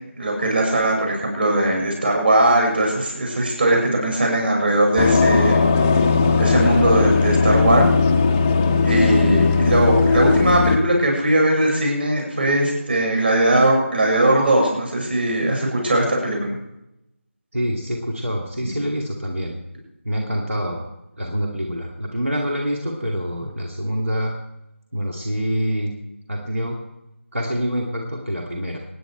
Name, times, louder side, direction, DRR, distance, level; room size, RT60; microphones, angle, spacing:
voice 1, 0.2-5.6 6.4-7.9 8.8-16.6, right 1 dB, 45° right, 0 dB, 6.3 m, -19 dB
sound 1, 5.0-10.8, left 4 dB, 15° left, 0.4 m, -17 dB
voice 2, 17.5-19.6 20.0-20.9 21.2-24.4 24.9-25.9 26.3-26.8 27.3-28.8, equal, 75° right, 0 dB, 2.5 m, -26 dB
25.0 x 10.0 x 4.5 m, 0.89 s
figure-of-eight pair, 165°, 7 cm